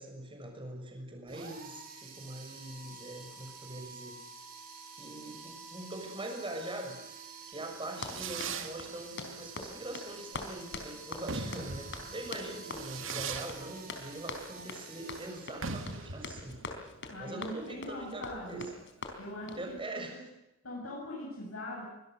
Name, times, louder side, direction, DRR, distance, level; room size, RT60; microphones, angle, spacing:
voice 1, 0.0-4.1 4.9-7.0 7.5-16.6 17.2-18.6 19.5-20.3, right 1 dB, 25° right, 3 dB, 6.6 m, -43 dB
sound 1, 1.3-16.2, right 4 dB, 45° right, 5.5 m, -49 dB
Fireworks, 7.6-19.8, right 4 dB, 65° right, 2.5 m, -42 dB
Run, 7.9-19.7, left 3 dB, 60° left, 4.2 m, -44 dB
voice 2, 17.1-18.7 19.2-20.2 20.6-21.9, left 1 dB, 80° left, -3 dB, 7.7 m, -41 dB
25.0 x 20.5 x 6.7 m, 0.95 s
head